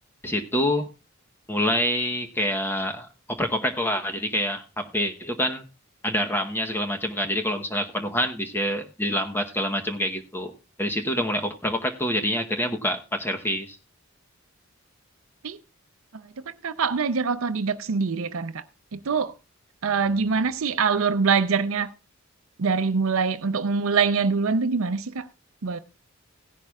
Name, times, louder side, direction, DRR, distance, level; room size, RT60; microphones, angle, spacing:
voice 1, 0.2-0.9 1.5-5.6 6.0-10.5 10.8-13.8, equal, 10° left, 0.9 m, -26 dB
voice 2, 16.1-18.6 18.9-19.3 19.8-21.9 22.6-25.3 25.6-25.8, right 5 dB, 80° right, 0.6 m, -24 dB
16.5 x 10.5 x 2.3 m
head